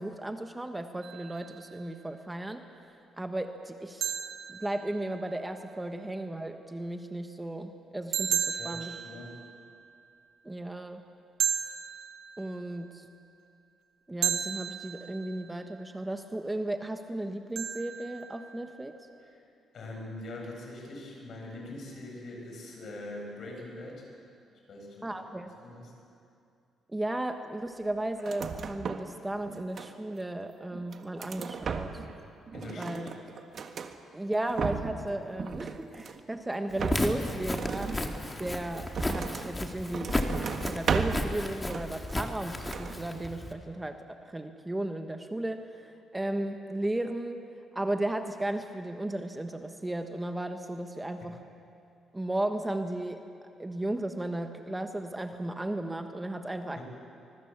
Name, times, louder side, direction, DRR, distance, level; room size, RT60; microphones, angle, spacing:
voice 1, 0.0-2.6 3.2-4.1 4.5-9.0 10.4-11.0 12.4-13.1 14.1-19.0 25.0-25.5 26.9-32.0 32.8-33.1 34.1-38.0 38.4-40.2 40.6-44.0 44.2-47.4 47.7-51.4 52.1-53.2 53.6-56.8, right 1 dB, 10° right, 6 dB, 1.2 m, -35 dB
sound 1, 1.0-1.8 4.0-5.4 8.1-9.9 11.4-12.8 14.2-15.6 17.6-18.8, right 9 dB, 85° right, 1.6 m, -34 dB
voice 2, 8.5-9.4 19.2-19.4 19.7-24.1 24.7-25.2 25.6-25.9 32.5-33.1 56.7-56.8, left 1 dB, 55° left, 0 dB, 7.7 m, -43 dB
sound 2, 28.2-29.2 29.4-30.2 30.7-32.2 32.5-33.9 34.3-35.1 35.4-36.3 36.8-39.5 39.9-41.3 41.7-42.4 42.7-43.0, right 6 dB, 50° right, 1.6 m, -35 dB
Walk footsteps, 36.7-43.5, left 1 dB, 15° left, 2.1 m, -34 dB
24.5 x 22.5 x 7.4 m, 2.5 s
cardioid pair, 105°, 0 cm